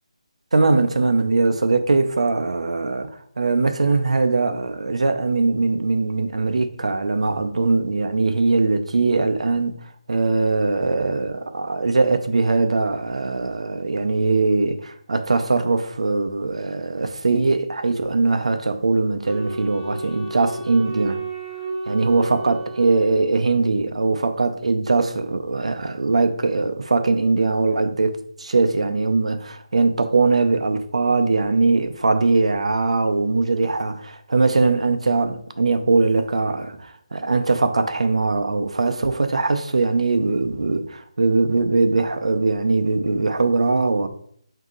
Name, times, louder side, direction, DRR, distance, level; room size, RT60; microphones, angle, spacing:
voice 1, 0.5-3.1 3.4-21.2 21.9-44.1, right 3 dB, 80° right, 0.5 m, -21 dB
Wind instrument woodwind instrument, 19.2-23.7, right 2 dB, 5° right, 0.7 m, -32 dB
4.8 x 2.8 x 3.7 m
hypercardioid pair, 180°, 3 cm